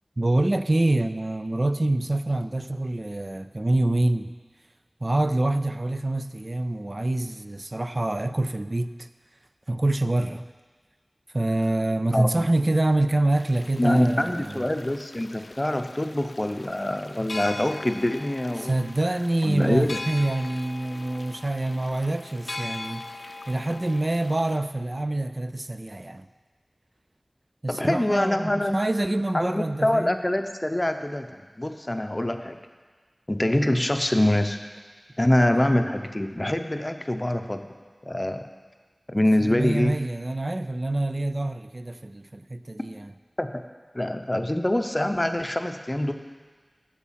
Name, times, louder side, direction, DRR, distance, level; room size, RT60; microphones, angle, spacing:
voice 1, 0.2-4.3 5.0-9.1 9.7-10.5 11.3-14.6 18.6-23.0 23.5-26.2 27.6-30.2 39.4-43.1, right 2 dB, 50° right, 11 dB, 0.4 m, -26 dB
voice 2, 12.1-12.5 13.8-18.8 19.4-20.0 27.7-28.8 29.3-32.6 33.3-34.6 35.2-37.7 38.0-38.4 39.1-39.9 43.4-43.6 43.9-46.1, left 1 dB, 30° left, 7 dB, 0.7 m, -25 dB
sound 1, 13.3-24.6, left 2 dB, 80° left, 0.4 m, -41 dB
8.3 x 7.2 x 7.4 m, 1.5 s
wide cardioid pair, 45°, 0 cm